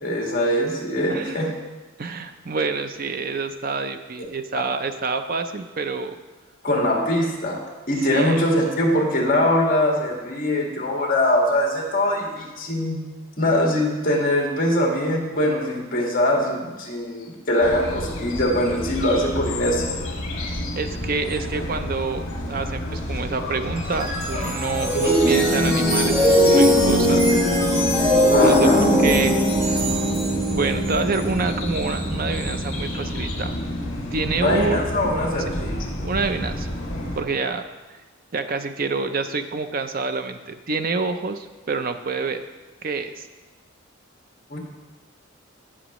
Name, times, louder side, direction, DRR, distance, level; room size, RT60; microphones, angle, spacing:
voice 1, 0.0-1.5 4.6-4.7 6.6-7.6 7.9-13.1 13.4-19.8 28.3-28.8 34.3-35.7 44.5-44.6, left 1 dB, 40° left, -1 dB, 1.8 m, -22 dB
voice 2, 1.1-1.5 2.0-6.1 8.1-8.4 20.7-27.3 28.4-29.4 30.5-33.6 34.1-34.8 36.0-36.7 37.2-37.6 38.3-42.4 42.8-43.3, right 4 dB, 45° right, 8 dB, 0.5 m, -27 dB
sound 1, 17.6-37.2, left 1 dB, 60° left, 2.0 m, -30 dB
sound 2, 23.8-33.0, equal, 10° right, 1.8 m, -20 dB
15.0 x 6.1 x 3.1 m, 1.2 s
head